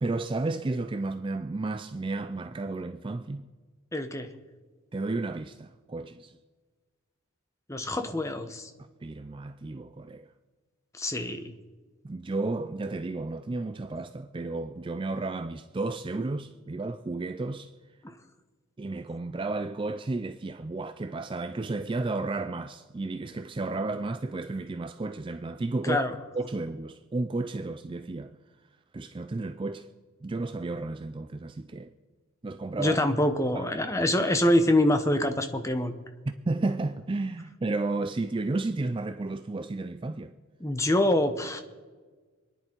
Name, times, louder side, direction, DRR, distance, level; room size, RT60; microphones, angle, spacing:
voice 1, 0.0-3.5 4.9-6.3 9.0-10.3 12.0-17.7 18.8-26.0 26.3-28.4 28.9-29.9 30.2-31.9 32.4-33.0 33.5-33.6 36.3-40.3, right 2 dB, 25° right, 0.3 m, -32 dB
voice 2, 3.9-4.3 7.7-8.7 11.0-11.5 18.0-18.1 25.9-26.1 32.8-35.9 40.6-41.6, left 1 dB, 15° left, 0.9 m, -25 dB
26.5 x 10.5 x 4.5 m
head